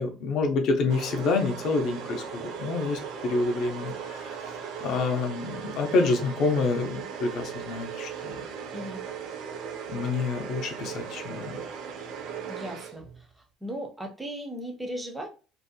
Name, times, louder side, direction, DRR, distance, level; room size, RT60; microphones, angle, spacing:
voice 1, 0.0-4.4 4.8-8.4 9.9-11.6, left 3 dB, 50° left, 4 dB, 0.5 m, -27 dB
sound 1, 0.9-13.3, right 7 dB, 65° right, 0.4 m, -38 dB
voice 2, 8.7-9.0 12.5-13.1 13.6-15.3, equal, 5° right, 2 dB, 0.4 m, -36 dB
2.5 x 2.1 x 2.6 m, 0.34 s
cardioid pair, 175°, 0 cm